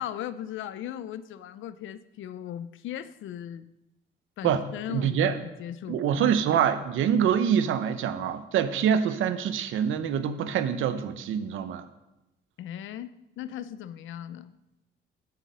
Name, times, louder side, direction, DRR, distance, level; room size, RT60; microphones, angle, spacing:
voice 1, 0.0-3.7 4.4-6.3 12.6-14.5, left 10 dB, 80° left, 14 dB, 0.6 m, -38 dB
voice 2, 4.9-5.4 5.9-11.9, right 8 dB, 80° right, 11 dB, 0.8 m, -25 dB
9.3 x 8.0 x 5.4 m, 0.95 s
cardioid pair, 90°, 20 cm